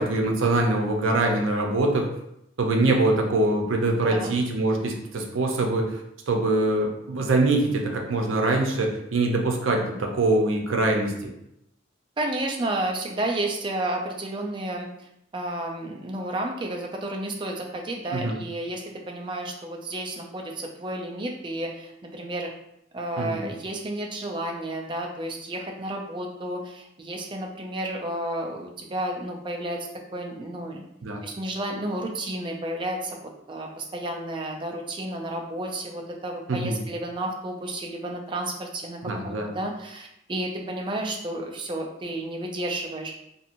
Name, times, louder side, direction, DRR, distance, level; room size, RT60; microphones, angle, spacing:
voice 1, 0.0-2.1 2.6-6.0 6.3-11.3 18.1-18.4 23.2-23.4 31.0-31.2 36.5-36.8 39.0-39.5, right 2 dB, 90° right, 2 dB, 0.6 m, -23 dB
voice 2, 12.2-14.9 15.3-22.5 22.9-30.8 31.2-33.2 33.5-43.2, right 1 dB, 25° right, 0 dB, 0.4 m, -31 dB
2.8 x 2.6 x 2.5 m, 0.79 s
head